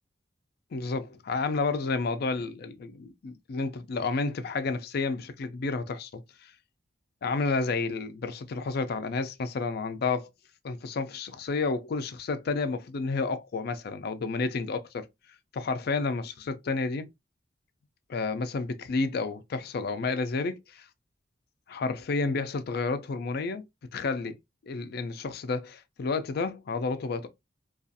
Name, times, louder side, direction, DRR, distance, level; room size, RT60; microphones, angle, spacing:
voice 1, 0.7-6.5 7.2-10.3 10.6-15.1 15.5-17.1 18.1-20.9 21.7-23.6 23.9-24.4 24.6-27.3, left 4 dB, 55° left, 0.4 m, -30 dB
2.4 x 2.3 x 2.6 m
head